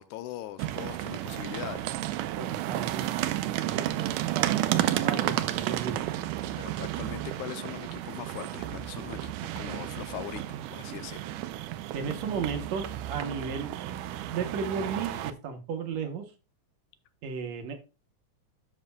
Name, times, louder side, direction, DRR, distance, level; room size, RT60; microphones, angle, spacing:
voice 1, 0.0-2.0 6.6-11.2, left 13 dB, 80° left, 1.9 m, -41 dB
sound 1, 0.6-15.3, right 13 dB, 85° right, 2.1 m, -32 dB
voice 2, 2.4-6.0 11.9-13.8 14.3-16.3 17.2-17.8, right 6 dB, 70° right, 1.9 m, -35 dB
12.5 x 5.6 x 2.2 m
omnidirectional pair, 3.6 m